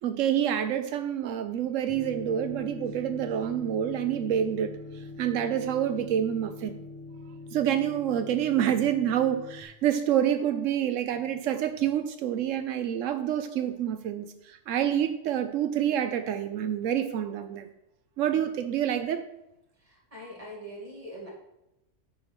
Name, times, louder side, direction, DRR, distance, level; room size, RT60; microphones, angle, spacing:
voice 1, 0.0-4.7 5.2-6.8 7.5-17.7 18.2-19.2, right 10 dB, 90° right, 10 dB, 1.0 m, -27 dB
sound 1, 1.9-9.6, left 3 dB, 25° left, 1.3 m, -42 dB
voice 2, 19.8-21.3, equal, 30° right, -3 dB, 2.6 m, -43 dB
9.6 x 4.8 x 6.0 m, 0.88 s
omnidirectional pair, 1.3 m